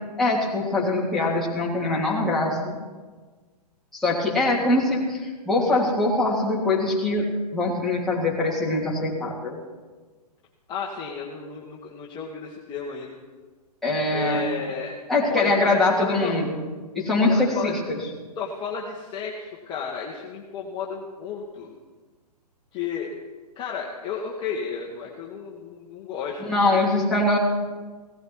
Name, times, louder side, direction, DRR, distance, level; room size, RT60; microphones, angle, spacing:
voice 1, 0.2-2.8 3.9-9.6 13.8-14.5 15.1-16.6 16.9-18.0 26.4-27.4, left 2 dB, ahead, -7 dB, 3.1 m, -23 dB
voice 2, 10.7-13.2 14.1-15.0 15.3-16.3 17.3-17.8 18.4-21.7 22.7-23.1 23.5-26.8, left 6 dB, 20° left, -3 dB, 1.6 m, -33 dB
17.5 x 14.5 x 4.7 m, 1.4 s
hypercardioid pair, 140°, 21 cm